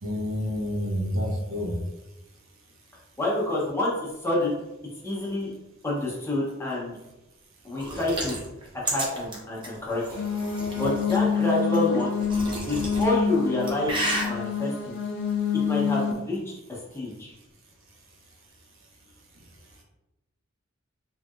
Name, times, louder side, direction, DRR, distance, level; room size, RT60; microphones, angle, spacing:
voice 1, 0.0-1.8, left 1 dB, 90° right, -1 dB, 0.8 m, -29 dB
voice 2, 3.2-4.6 5.0-5.5 5.8-7.0 7.6-8.4 8.9-10.0 10.7-12.1 12.7-13.9 14.3-15.0 15.6-16.4 16.7-17.3, left 2 dB, 15° left, -4 dB, 0.7 m, -27 dB
sound 1, 7.8-11.2 11.7-13.1 13.5-14.3, right 1 dB, 25° right, 0.6 m, -32 dB
sound 2, 10.1-16.1, left 6 dB, 60° left, 0.3 m, -27 dB
3.1 x 2.7 x 2.4 m, 0.97 s
head